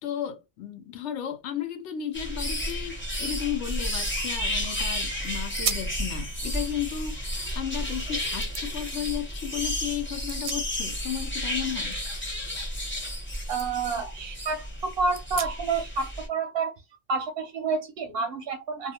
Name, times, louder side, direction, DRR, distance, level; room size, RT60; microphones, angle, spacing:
voice 1, 0.0-12.0, left 10 dB, 70° left, 0.9 m, -34 dB
sound 1, 2.1-16.3, equal, 10° left, 0.7 m, -32 dB
sound 2, 2.1-2.2 2.4-4.6 5.0-5.2 5.5-6.0 6.4-7.8 8.4-8.7 10.0-11.1 11.4-13.2 13.5-13.7 14.2-14.3 15.1-15.9, right 9 dB, 90° right, 0.9 m, -38 dB
voice 2, 13.5-16.7 17.1-18.9, right 4 dB, 60° right, 0.7 m, -29 dB
2.4 x 2.3 x 2.7 m
omnidirectional pair, 1.3 m